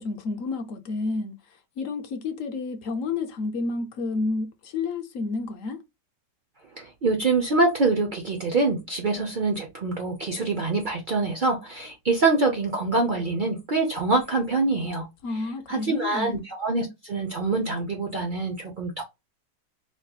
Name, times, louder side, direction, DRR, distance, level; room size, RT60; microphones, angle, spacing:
voice 1, 0.0-1.3 1.8-5.8 15.2-16.4, left 3 dB, 65° left, 0.8 m, -30 dB
voice 2, 6.8-15.1 15.7-19.0, right 3 dB, 90° right, 0.4 m, -25 dB
4.5 x 2.9 x 2.3 m
omnidirectional pair, 1.9 m